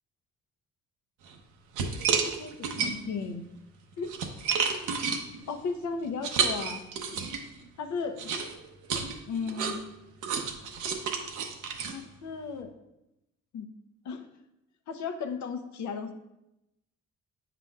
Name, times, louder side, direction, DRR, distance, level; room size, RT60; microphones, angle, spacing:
sound 1, 1.3-1.4 1.7-3.2 3.8-7.6 8.2-12.6, right 6 dB, 85° right, 0.8 m, -31 dB
voice 1, 2.1-3.4 4.0-4.1 5.5-6.8 7.8-8.2 9.3-9.8 11.9-12.7 13.5-13.7 14.0-14.3 14.9-16.1, left 5 dB, 70° left, 6 dB, 0.7 m, -35 dB
8.4 x 5.8 x 2.3 m, 0.91 s
cardioid pair, 90°, 30 cm